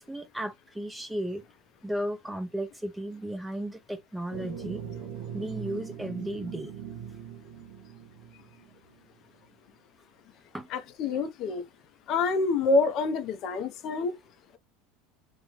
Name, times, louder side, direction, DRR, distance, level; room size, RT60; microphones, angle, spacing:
voice 1, 0.0-1.4 1.8-4.8 5.3-6.7 10.5-10.7, right 1 dB, 5° right, 0.7 m, -34 dB
sound 1, 4.3-8.9, right 8 dB, 75° right, 0.9 m, -41 dB
voice 2, 10.7-11.6 12.1-14.1, left 3 dB, 50° left, 0.6 m, -27 dB
2.8 x 2.2 x 3.0 m
hypercardioid pair, 90°, 0 cm